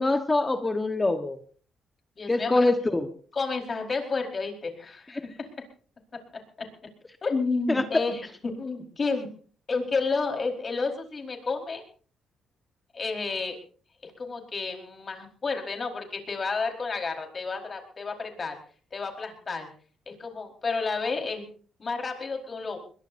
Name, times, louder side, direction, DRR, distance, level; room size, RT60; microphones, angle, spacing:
voice 1, 0.0-1.4 2.3-3.0 7.7-7.8, left 2 dB, 20° left, 8 dB, 1.3 m, -24 dB
voice 2, 2.2-2.7 3.3-5.6 6.6-6.7 7.2-9.3 9.7-11.8 12.9-13.6 14.0-18.6 18.9-19.7 20.1-21.5 21.8-22.8, left 4 dB, 35° left, 3 dB, 4.7 m, -31 dB
21.5 x 21.5 x 2.7 m, 0.43 s
cardioid pair, 90°, 0 cm